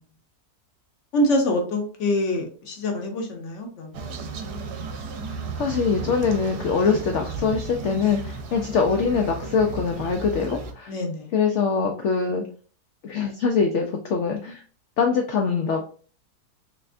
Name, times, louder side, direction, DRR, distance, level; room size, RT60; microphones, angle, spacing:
voice 1, 1.1-4.1 6.8-7.0 10.9-11.3, left 1 dB, 60° left, 0.8 m, -25 dB
sound 1, 3.9-10.7, right 3 dB, 75° right, 1.2 m, -34 dB
voice 2, 5.6-10.9 11.3-12.4 13.0-14.6 15.0-15.8, left 5 dB, 90° left, 0.6 m, -23 dB
3.5 x 3.3 x 2.5 m
omnidirectional pair, 1.8 m